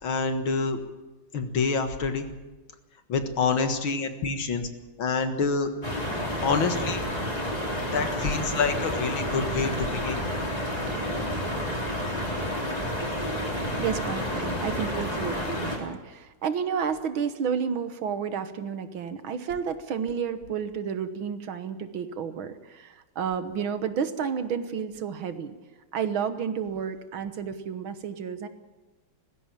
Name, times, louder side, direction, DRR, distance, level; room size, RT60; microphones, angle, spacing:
voice 1, 0.0-0.8 1.3-2.3 3.1-4.7 5.0-5.7 6.4-7.0 7.9-10.2, left 4 dB, 70° left, 7 dB, 2.3 m, -27 dB
sound 1, 5.8-15.8, equal, 15° left, 4.0 m, -30 dB
voice 2, 13.8-25.5 25.9-28.5, right 7 dB, 70° right, 10 dB, 2.0 m, -31 dB
19.0 x 15.5 x 9.0 m, 1.2 s
omnidirectional pair, 2.4 m